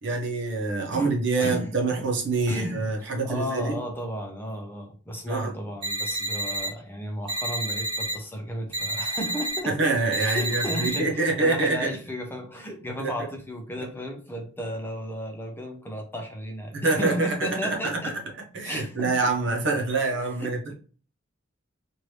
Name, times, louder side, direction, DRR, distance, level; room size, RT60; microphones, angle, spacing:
voice 1, 0.0-3.8 5.3-5.5 9.7-11.9 13.0-13.1 16.7-18.1 18.5-20.7, right 3 dB, 60° right, 0.9 m, -26 dB
voice 2, 0.9-2.1 2.5-9.9 10.3-18.1 18.6-19.1 20.2-20.7, equal, 10° left, 0.6 m, -34 dB
sound 1, 5.8-6.7 7.3-8.1 8.7-9.6 10.1-11.0, right 1 dB, 25° right, 1.3 m, -29 dB
3.1 x 2.6 x 3.2 m
head